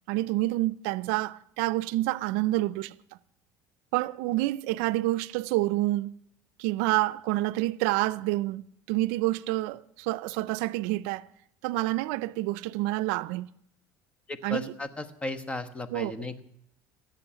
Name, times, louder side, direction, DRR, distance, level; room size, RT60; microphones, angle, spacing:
voice 1, 0.1-2.9 3.9-6.1 6.6-11.3 11.6-13.5 14.4-14.7 15.9-16.1, right 18 dB, 85° right, 0.5 m, -28 dB
voice 2, 14.3-16.4, left 2 dB, 15° left, 1.2 m, -35 dB
17.5 x 7.6 x 8.9 m
cardioid pair, 130°, 8 cm